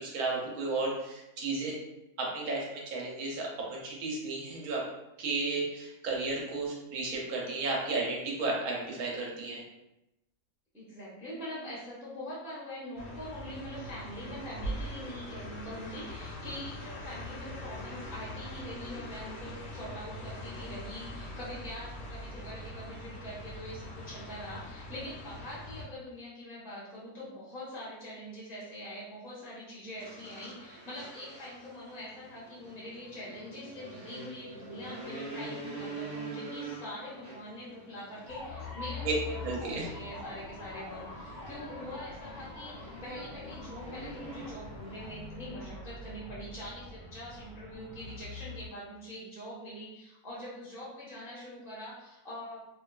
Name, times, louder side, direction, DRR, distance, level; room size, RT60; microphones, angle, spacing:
voice 1, 0.0-1.7 2.2-4.8 5.2-9.6 39.0-39.1 39.4-39.9, right 3 dB, 70° right, -2 dB, 1.1 m, -33 dB
voice 2, 10.7-52.7, equal, 5° right, -9 dB, 0.4 m, -43 dB
sound 1, 13.0-25.8, left 1 dB, 80° left, 0.5 m, -42 dB
sound 2, 30.0-45.5, right 2 dB, 45° right, 1.0 m, -46 dB
sound 3, 38.3-48.7, left 3 dB, 65° left, 0.9 m, -44 dB
2.7 x 2.3 x 2.2 m, 0.91 s
omnidirectional pair, 1.7 m